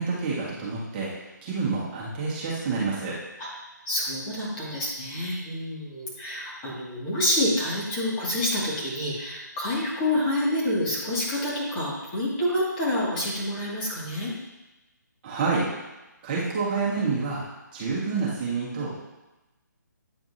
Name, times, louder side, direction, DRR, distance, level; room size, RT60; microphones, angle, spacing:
voice 1, 0.0-3.2 15.2-15.7 16.2-17.5 17.7-19.0, right 4 dB, 30° right, -7 dB, 1.6 m, -28 dB
voice 2, 3.9-14.3, left 1 dB, 25° left, -7 dB, 2.2 m, -28 dB
9.0 x 4.4 x 2.8 m, 1.0 s
figure-of-eight pair, 145°, 10 cm